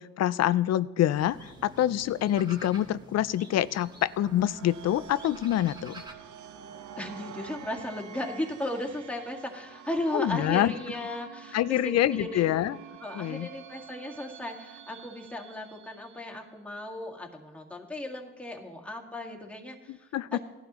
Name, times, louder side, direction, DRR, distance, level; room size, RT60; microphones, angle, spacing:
voice 1, 0.0-6.0 10.1-10.7 11.5-12.8 13.1-13.5 19.9-20.4, left 12 dB, 60° left, 18 dB, 0.5 m, -26 dB
sound 1, 1.1-6.1, right 1 dB, 15° right, 1.7 m, -48 dB
sound 2, 3.9-16.4, right 8 dB, 75° right, 0.9 m, -48 dB
voice 2, 7.0-12.5 13.0-20.0 20.3-20.4, left 1 dB, 5° left, 0 dB, 1.9 m, -36 dB
18.0 x 11.5 x 3.1 m, 1.1 s
cardioid pair, 90°, 30 cm